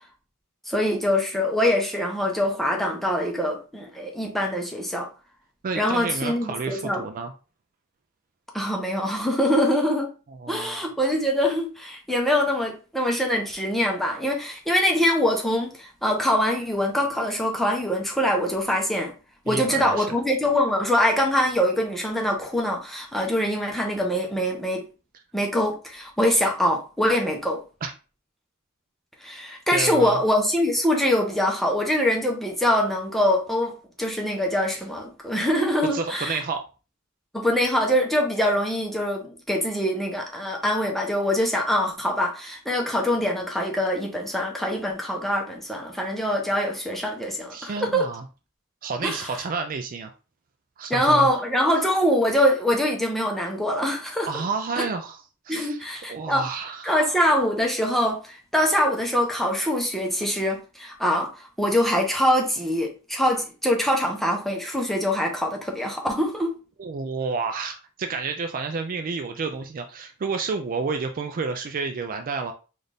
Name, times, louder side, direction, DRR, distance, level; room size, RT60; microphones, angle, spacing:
voice 1, 0.7-5.1 5.8-7.0 8.5-10.1 10.5-19.1 19.4-24.8 25.3-27.6 29.2-36.4 37.3-48.1 49.0-49.3 50.9-54.3 54.8-54.9 55.5-56.5 56.8-66.5, left 1 dB, ahead, 0.7 m, -24 dB
voice 2, 5.6-7.3 10.3-10.9 19.5-20.2 27.8-27.9 29.7-30.2 35.9-36.6 47.5-48.2 48.8-50.1 50.8-51.3 54.3-56.9 66.8-72.5, right 4 dB, 40° right, 0.4 m, -30 dB
4.0 x 2.5 x 3.4 m
head